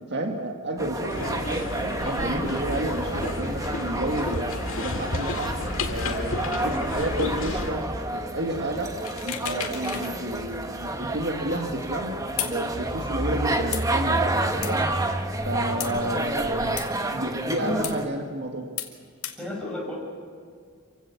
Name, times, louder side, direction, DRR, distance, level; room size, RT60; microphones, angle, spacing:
voice 1, 0.1-4.5 4.7-5.6 5.9-8.9 9.2-12.2 12.4-14.8 15.4-16.7 17.1-18.7, right 1 dB, 55° right, 3 dB, 1.7 m, -31 dB
sound 1, 0.8-18.1, right 2 dB, 15° right, 1.2 m, -29 dB
sound 2, 1.1-7.7, left 2 dB, 65° left, 2.0 m, -32 dB
voice 2, 6.4-7.2 15.8-16.1 17.4-17.9 19.4-20.0, left 2 dB, 5° left, -3 dB, 6.4 m, -33 dB
sound 3, 9.0-10.1 10.5-10.6 12.4-12.6 13.7-13.8 14.6-14.7 15.8-15.9 16.8-16.9 17.8-18.0 18.8-18.9 19.2-19.4, left 11 dB, 90° left, 2.1 m, -32 dB
27.0 x 16.5 x 6.9 m, 2.1 s
head